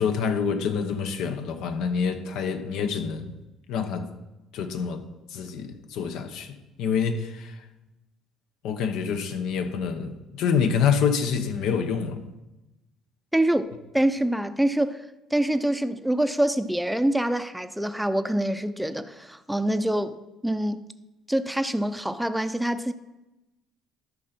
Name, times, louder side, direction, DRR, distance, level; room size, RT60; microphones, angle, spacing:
voice 1, 0.0-3.3 3.7-4.1 4.5-5.0 5.3-7.6 8.6-12.2, left 6 dB, 75° left, 1.0 m, -27 dB
voice 2, 13.3-15.0 15.3-20.2 20.4-20.9 21.3-22.9, right 1 dB, 5° right, 0.6 m, -25 dB
12.5 x 5.4 x 4.4 m
supercardioid pair, 80°, 0 cm